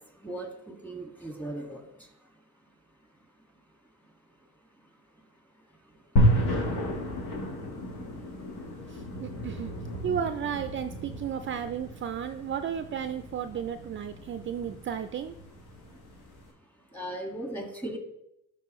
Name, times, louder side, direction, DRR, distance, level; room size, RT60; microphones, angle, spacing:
voice 1, 0.2-1.8 16.9-18.0, right 1 dB, 5° left, 1 dB, 1.9 m, -37 dB
sound 1, 6.2-16.4, equal, 85° left, 1.6 m, -31 dB
voice 2, 8.9-9.7 10.0-15.3, right 8 dB, 40° right, 9 dB, 0.4 m, -33 dB
11.5 x 4.2 x 3.1 m, 0.81 s
cardioid pair, 90°, 30 cm